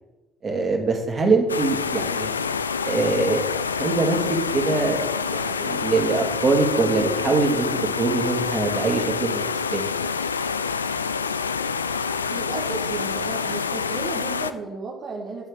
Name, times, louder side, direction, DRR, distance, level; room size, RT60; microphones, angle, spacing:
voice 1, 0.4-2.3 2.9-3.4 3.8-4.2 4.5-5.0 5.3-7.7 8.0-9.8, right 3 dB, 35° right, 2 dB, 2.4 m, -23 dB
sound 1, 1.5-14.5, left 5 dB, 80° left, 0.3 m, -27 dB
voice 2, 12.3-15.5, right 4 dB, 50° right, -2 dB, 1.5 m, -34 dB
9.3 x 6.5 x 6.7 m, 1.1 s
figure-of-eight pair, 50°, 0 cm